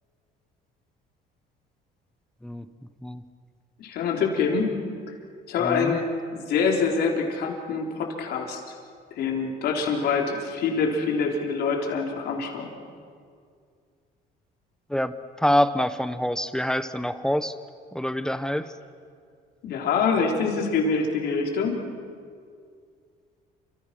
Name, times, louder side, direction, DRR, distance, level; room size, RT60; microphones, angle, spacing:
voice 1, 3.8-4.7 5.5-6.1 6.3-8.6 9.2-12.7 19.6-21.8, left 5 dB, 70° left, 1 dB, 4.2 m, -25 dB
voice 2, 5.6-6.0 14.9-17.5 17.9-18.7, equal, 5° left, 11 dB, 1.0 m, -26 dB
29.5 x 26.0 x 6.2 m, 2.2 s
cardioid pair, 110°, 17 cm